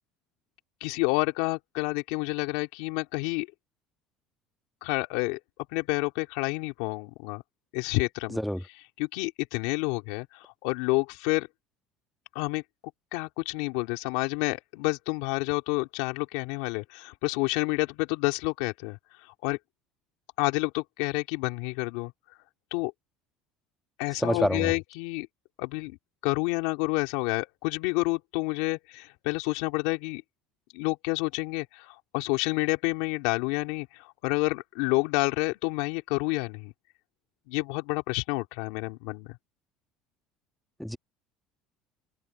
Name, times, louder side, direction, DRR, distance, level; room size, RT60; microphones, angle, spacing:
voice 1, 0.8-3.5 4.8-5.4 5.7-7.4 7.7-8.4 9.0-11.5 12.3-12.6 13.1-19.0 19.4-19.6 20.4-22.1 22.7-22.9 24.0-25.3 25.6-26.0 26.2-30.2 30.7-36.7 37.5-39.4, left 24 dB, 85° left, 3.4 m, -29 dB
voice 2, 8.3-8.6 24.1-24.7 40.8-41.0, equal, ahead, 1.5 m, -27 dB
cardioid pair, 135°, 0 cm